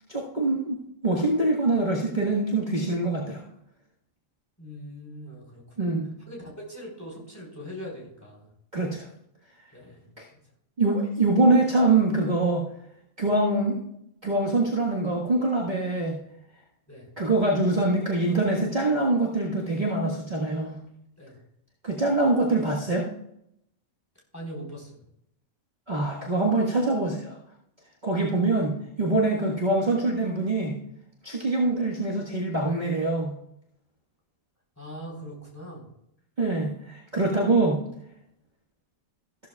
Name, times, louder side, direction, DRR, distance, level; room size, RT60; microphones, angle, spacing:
voice 1, 0.1-3.4 5.8-6.1 8.7-9.1 10.8-12.6 13.2-13.8 14.2-16.2 17.2-20.8 21.8-23.1 25.9-27.4 28.0-30.8 31.2-33.3 36.4-37.8, right 2 dB, 30° right, -4 dB, 1.6 m, -24 dB
voice 2, 4.6-6.0 6.3-8.5 9.7-10.4 16.9-17.1 21.2-21.4 24.3-25.0 29.4-29.5 34.8-35.9, equal, 10° left, -2 dB, 4.1 m, -41 dB
14.5 x 13.0 x 2.4 m, 0.77 s
omnidirectional pair, 1.5 m